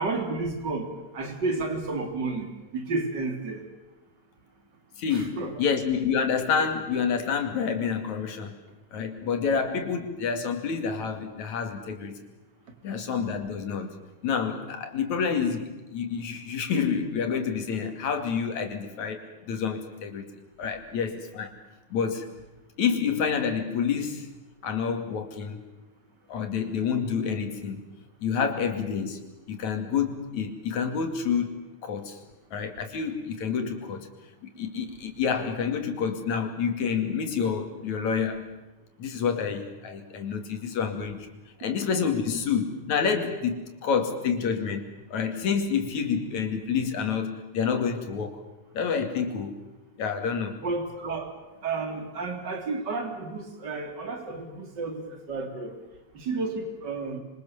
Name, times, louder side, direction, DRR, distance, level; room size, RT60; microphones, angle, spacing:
voice 1, 0.0-3.6 5.1-5.6 50.6-51.3 51.6-55.7 56.1-57.2, right 3 dB, 35° right, 5 dB, 3.7 m, -31 dB
voice 2, 5.0-8.6 8.9-12.2 12.8-13.9 14.2-20.3 20.6-21.5 21.9-22.3 22.8-24.3 24.6-25.6 26.3-27.8 28.2-29.2 29.5-32.2 32.5-34.1 34.4-38.5 39.0-41.3 41.6-48.4 48.7-49.6 50.0-50.6, left 6 dB, 70° left, 6 dB, 3.8 m, -28 dB
27.0 x 24.5 x 7.3 m, 1.0 s
omnidirectional pair, 3.5 m